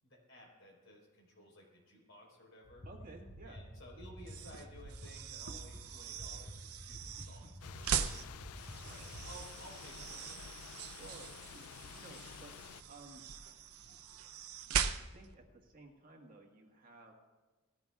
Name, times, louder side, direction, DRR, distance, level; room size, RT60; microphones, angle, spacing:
voice 1, 0.0-2.9 3.5-10.8, left 1 dB, 60° left, -2 dB, 4.2 m, -57 dB
sound 1, 2.6-9.2, equal, 40° left, 3.4 m, -50 dB
voice 2, 2.8-3.6 7.2-7.5 8.7-9.1 11.0-12.5 12.9-13.2 14.9-17.1, right 2 dB, 40° right, 1 dB, 1.6 m, -56 dB
sound 2, 4.2-15.3, right 7 dB, 85° right, 0.7 m, -41 dB
sound 3, 7.6-12.8, left 8 dB, 85° left, 0.4 m, -51 dB
19.5 x 14.5 x 2.4 m, 1.2 s
head